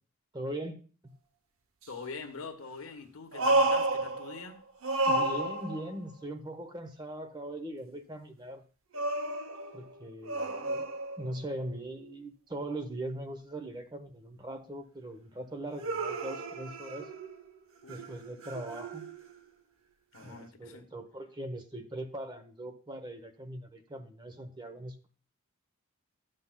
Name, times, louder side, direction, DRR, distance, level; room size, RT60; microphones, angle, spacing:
voice 1, 0.3-0.8 1.0-1.1 5.1-8.6 9.7-10.9 11.2-17.1 17.9-19.0 20.2-25.1, right 1 dB, 20° right, 8 dB, 0.7 m, -40 dB
sound 1, 1.8-1.9 3.3-4.6 4.8-6.0 8.9-11.5 15.8-17.5 17.9-19.3 20.3-20.4, right 2 dB, 70° right, 0.8 m, -31 dB
voice 2, 1.9-4.6 17.8-18.1 20.1-20.9, left 4 dB, 85° left, 4 dB, 1.2 m, -44 dB
12.5 x 7.6 x 2.2 m, 0.37 s
head